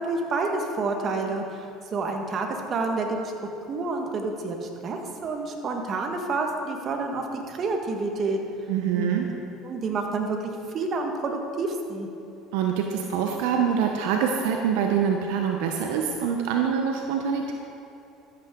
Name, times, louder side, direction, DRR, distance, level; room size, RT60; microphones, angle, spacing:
voice 1, 0.0-3.3 3.7-8.4 8.9-9.1 9.6-12.1, right 3 dB, 45° right, 3 dB, 1.5 m, -29 dB
voice 2, 8.7-9.3 12.5-17.5, right 7 dB, 75° right, 2 dB, 0.8 m, -25 dB
13.0 x 8.7 x 3.8 m, 2.8 s
supercardioid pair, 90°, 0 cm